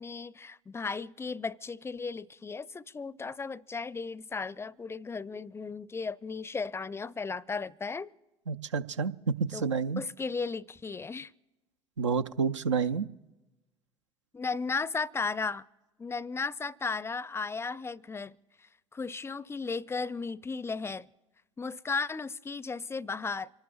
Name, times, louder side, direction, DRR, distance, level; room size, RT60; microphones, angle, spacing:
voice 1, 0.0-8.1 9.5-9.7 10.0-11.3 14.3-15.7 16.0-18.4 18.9-21.1 21.6-23.5, left 4 dB, 15° left, 0.5 m, -35 dB
voice 2, 8.5-9.1 9.5-10.0 12.0-13.1, right 6 dB, 80° right, 0.5 m, -29 dB
27.0 x 18.5 x 2.4 m
figure-of-eight pair, 65°, 15 cm